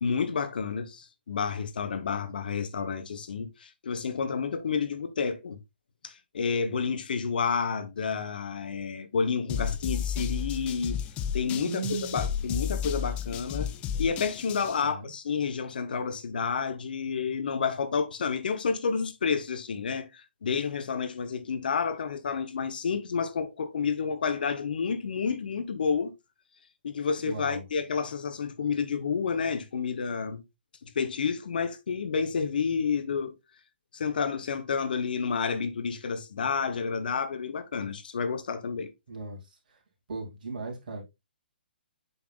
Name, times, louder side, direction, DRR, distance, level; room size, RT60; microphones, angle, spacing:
voice 1, 0.0-5.6 6.0-11.0 11.3-13.7 14.0-26.1 26.8-30.4 30.8-33.3 33.9-38.9, left 5 dB, 60° left, 1.0 m, -30 dB
sound 1, 9.5-14.8, left 8 dB, 20° left, 0.5 m, -32 dB
voice 2, 11.6-12.2 14.8-15.1 27.2-27.6 39.1-39.8 40.1-41.1, right 3 dB, 50° right, 2.7 m, -37 dB
7.9 x 5.8 x 2.4 m
figure-of-eight pair, 125°, 6 cm